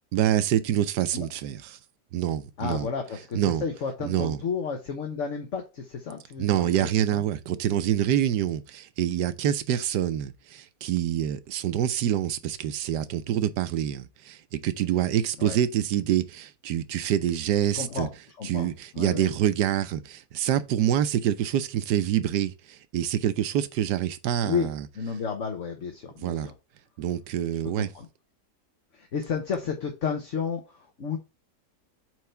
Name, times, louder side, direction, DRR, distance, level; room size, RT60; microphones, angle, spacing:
voice 1, 0.1-1.8 2.1-2.9 3.3-3.6 4.0-4.4 6.4-18.1 18.4-24.8 26.2-26.5 27.0-27.9, right 11 dB, 80° right, 1.3 m, -26 dB
voice 2, 2.6-7.2 15.4-15.6 17.8-18.1 18.4-19.3 24.4-24.7 24.9-26.5 27.8-28.1 28.9-31.2, left 6 dB, 50° left, 1.3 m, -32 dB
4.7 x 4.6 x 5.4 m
omnidirectional pair, 1.8 m